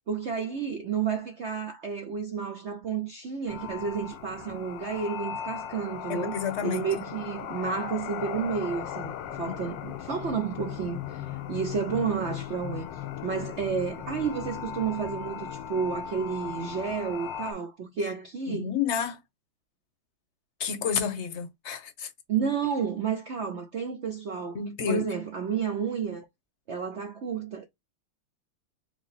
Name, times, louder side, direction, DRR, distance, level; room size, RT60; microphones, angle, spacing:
voice 1, 0.1-6.4 6.6-12.9 13.2-18.7 22.3-24.6 24.9-26.3 26.7-27.7, right 6 dB, 70° right, 0.6 m, -31 dB
sound 1, 3.5-17.5, left 9 dB, 75° left, 1.3 m, -37 dB
voice 2, 6.1-6.9 18.5-19.2 20.6-22.1 24.5-25.0, left 7 dB, 50° left, 0.9 m, -30 dB
4.9 x 2.0 x 4.0 m
omnidirectional pair, 2.1 m